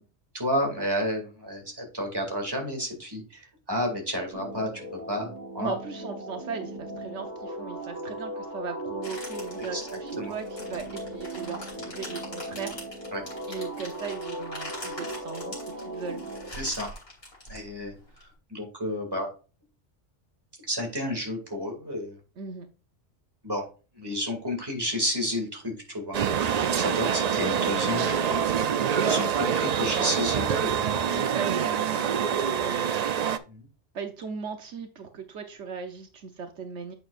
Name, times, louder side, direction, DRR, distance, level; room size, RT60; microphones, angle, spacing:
voice 1, 0.3-5.8 9.7-9.8 10.2-10.3 13.1-13.2 16.6-16.9 17.5-19.3 20.7-22.2 23.4-23.7 24.0-28.7 29.1-30.5 33.5-33.7, equal, 20° right, 1 dB, 2.4 m, -31 dB
sound 1, 4.3-16.5, right 1 dB, 45° right, 1.6 m, -38 dB
voice 2, 5.6-12.8 13.5-16.2 22.4-22.7 30.3-32.9 33.9-36.9, right 5 dB, 80° right, 6 dB, 1.2 m, -38 dB
sound 2, 9.0-18.2, left 1 dB, 55° left, 3.4 m, -43 dB
sound 3, 26.1-33.4, right 8 dB, 60° right, 0.4 m, -26 dB
8.4 x 6.5 x 2.5 m, 0.34 s
omnidirectional pair, 1.2 m